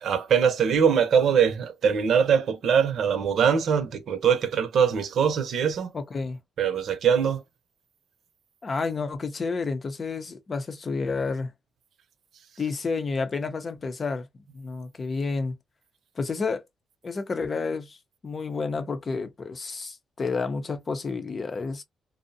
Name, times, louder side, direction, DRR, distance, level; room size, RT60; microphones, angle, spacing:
voice 1, 0.0-5.9 6.6-7.4, right 7 dB, 65° right, 0.7 m, -22 dB
voice 2, 5.9-6.4 8.6-11.5 12.6-15.5 16.2-16.6 17.0-18.0 18.2-21.8, left 4 dB, 35° left, 0.6 m, -30 dB
2.6 x 2.0 x 2.7 m
cardioid pair, 90°, 0 cm